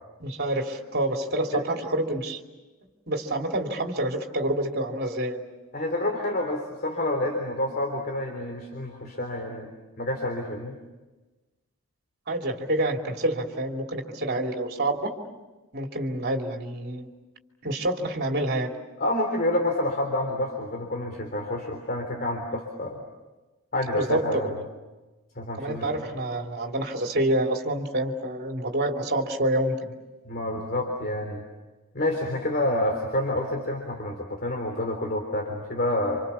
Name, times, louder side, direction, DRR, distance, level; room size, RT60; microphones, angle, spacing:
voice 1, 0.2-2.4 3.1-5.4 12.3-15.1 15.7-17.1 17.6-18.7 23.9-24.6 25.6-29.9, right 1 dB, 50° right, 2 dB, 3.1 m, -27 dB
voice 2, 5.7-10.8 19.0-23.0 23.7-24.5 25.3-25.9 30.2-31.4 31.9-36.2, left 1 dB, 45° left, 2 dB, 3.5 m, -28 dB
29.0 x 27.0 x 7.1 m, 1.2 s
head